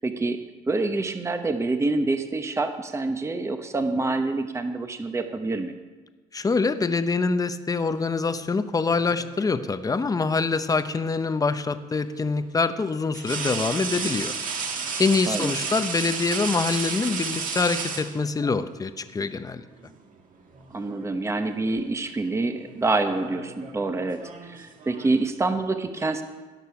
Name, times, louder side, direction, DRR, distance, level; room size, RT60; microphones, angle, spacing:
voice 1, 0.0-0.4 0.7-5.7 15.3-15.5 20.7-26.2, right 3 dB, 15° right, 7 dB, 0.9 m, -26 dB
voice 2, 6.3-14.3 15.0-19.7, left 4 dB, 20° left, 11 dB, 0.7 m, -25 dB
sound 1, 8.8-9.7 11.4-11.6 13.1-18.6 19.8-20.0 20.4-21.2 21.4-21.8 22.7-25.3, right 5 dB, 50° right, 1.7 m, -33 dB
17.5 x 6.8 x 5.8 m, 1.3 s
cardioid pair, 110°, 17 cm